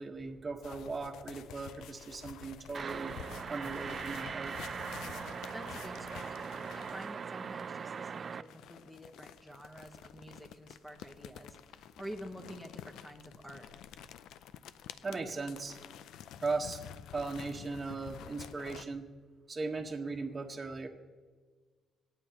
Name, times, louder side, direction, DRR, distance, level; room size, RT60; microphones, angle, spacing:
voice 1, 0.0-3.1 3.5-4.6 15.0-15.8 16.4-16.8 17.1-19.1 19.5-20.9, right 3 dB, 30° right, 0 dB, 1.3 m, -38 dB
sound 1, 0.6-7.2 8.4-18.8, left 10 dB, 85° left, 0.5 m, -50 dB
sound 2, 2.7-8.4, right 6 dB, 45° right, 0.5 m, -40 dB
voice 2, 5.5-13.7, equal, 5° left, 2 dB, 1.4 m, -48 dB
26.0 x 9.1 x 3.0 m, 1.5 s
cardioid pair, 90°, 0 cm